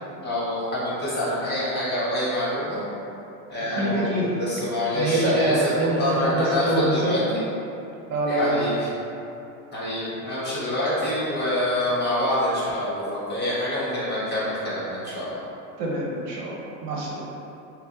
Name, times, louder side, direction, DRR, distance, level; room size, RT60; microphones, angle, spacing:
voice 1, 0.2-2.8 3.5-7.4 8.3-8.9 9.7-15.4, left 1 dB, 25° left, -9 dB, 1.4 m, -26 dB
voice 2, 3.8-4.3 4.9-7.4 8.1-8.6 15.8-16.5 16.8-17.2, right 1 dB, 55° right, -4 dB, 0.9 m, -24 dB
5.4 x 2.1 x 2.7 m, 2.9 s
supercardioid pair, 110°, 42 cm